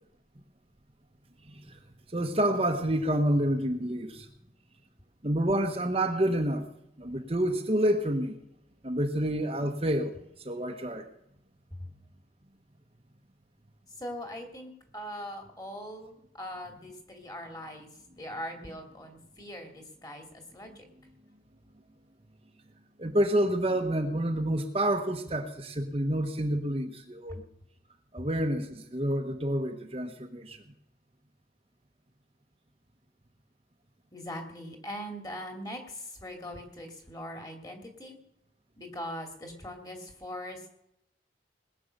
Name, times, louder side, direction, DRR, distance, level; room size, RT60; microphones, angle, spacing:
voice 1, 1.5-1.8 2.1-4.3 5.2-6.7 7.0-8.4 8.8-11.1 23.0-27.4 28.1-30.6, right 1 dB, 30° right, 4 dB, 1.1 m, -28 dB
voice 2, 14.0-17.9 18.2-20.2 20.5-20.8 27.3-27.4 34.1-38.2 38.8-40.7, equal, 20° left, 3 dB, 2.7 m, -41 dB
20.5 x 8.6 x 6.6 m, 0.78 s
head